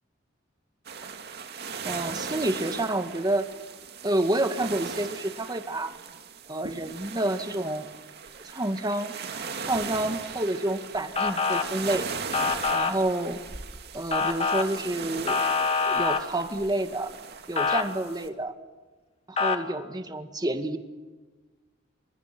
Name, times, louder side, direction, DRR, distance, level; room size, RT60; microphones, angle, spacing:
sound 1, 0.8-18.3, right 5 dB, 60° right, 2.3 m, -38 dB
voice 1, 1.8-3.5 4.0-6.0 6.5-7.9 8.4-9.1 9.7-12.1 12.7-13.4 13.9-15.4 15.7-17.1 17.5-18.5 19.3-20.8, right 1 dB, 20° right, 8 dB, 1.9 m, -29 dB
Motor vehicle (road) / Siren, 11.2-11.6 12.3-12.9 14.1-14.6 15.3-16.2 17.6-17.8 19.4-19.6, left 5 dB, 30° left, 2.2 m, -25 dB
28.0 x 26.5 x 6.1 m, 1.3 s
head